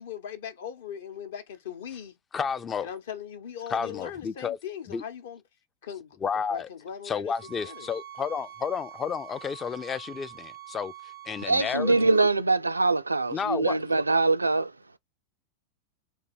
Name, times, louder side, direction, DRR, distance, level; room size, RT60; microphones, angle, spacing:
voice 1, 0.0-2.1 2.8-5.4 5.8-6.2 6.5-7.3 7.6-7.9, left 8 dB, 60° left, 0.8 m, -39 dB
voice 2, 2.3-2.9 3.7-4.6 4.9-5.0 6.2-6.7 7.0-10.9 11.3-12.0 13.3-13.8, left 6 dB, 20° left, 0.4 m, -31 dB
sound 1, 7.3-12.3, right 12 dB, 75° left, 1.0 m, -45 dB
voice 3, 11.4-14.7, right 3 dB, 80° right, 0.3 m, -23 dB
3.8 x 2.6 x 4.5 m
figure-of-eight pair, 90°, 0 cm